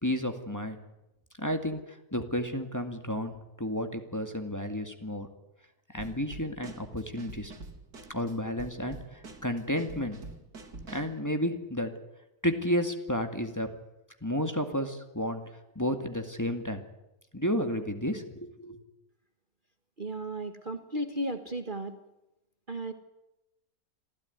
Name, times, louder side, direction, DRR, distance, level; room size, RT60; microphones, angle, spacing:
voice 1, 0.0-0.8 1.4-5.3 5.9-7.5 8.1-10.2 10.9-11.9 12.4-13.8 14.2-15.4 15.8-16.8 17.3-18.8, equal, 10° left, 5 dB, 2.1 m, -32 dB
Drum kit / Snare drum, 6.0-11.2, right 3 dB, 80° right, 2.8 m, -47 dB
voice 2, 20.0-22.0 22.7-22.9, right 1 dB, 35° right, 7 dB, 1.5 m, -34 dB
26.5 x 15.5 x 9.6 m, 0.92 s
omnidirectional pair, 1.6 m